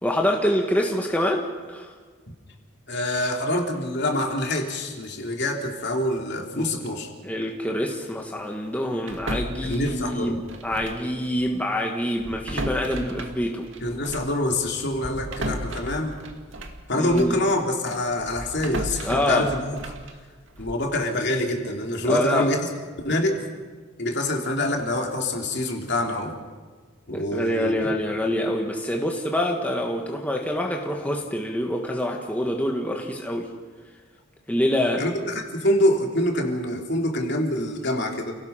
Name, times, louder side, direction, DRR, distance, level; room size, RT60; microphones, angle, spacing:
voice 1, 0.0-1.9 6.5-6.8 7.2-13.7 17.0-17.4 19.0-19.5 22.0-22.5 27.1-33.5 34.5-35.0, left 1 dB, 5° left, 1 dB, 1.7 m, -26 dB
voice 2, 2.9-7.1 9.6-10.4 13.8-16.2 16.9-19.9 20.6-22.7 23.0-23.5 24.0-26.4 27.1-27.9 35.0-38.3, left 1 dB, 55° left, 1 dB, 3.1 m, -25 dB
sound 1, 9.1-11.1 11.4-11.6 12.2-17.4 17.8-20.9, right 1 dB, 65° right, 2.1 m, -35 dB
29.0 x 17.5 x 5.8 m, 1.5 s
head